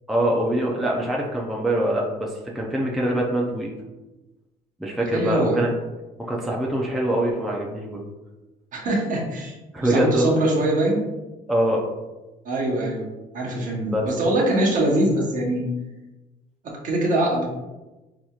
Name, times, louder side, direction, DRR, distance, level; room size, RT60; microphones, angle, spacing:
voice 1, 0.1-3.7 4.8-5.7 6.2-8.0 9.7-10.4 11.5-11.8 13.9-14.1, right 1 dB, ahead, -3 dB, 0.5 m, -23 dB
voice 2, 5.1-5.6 8.7-9.6 9.8-11.0 12.4-13.1 13.3-15.6 16.6-17.5, right 1 dB, 50° right, -2 dB, 1.0 m, -23 dB
4.0 x 2.9 x 2.4 m, 1.1 s
cardioid pair, 110°, 17 cm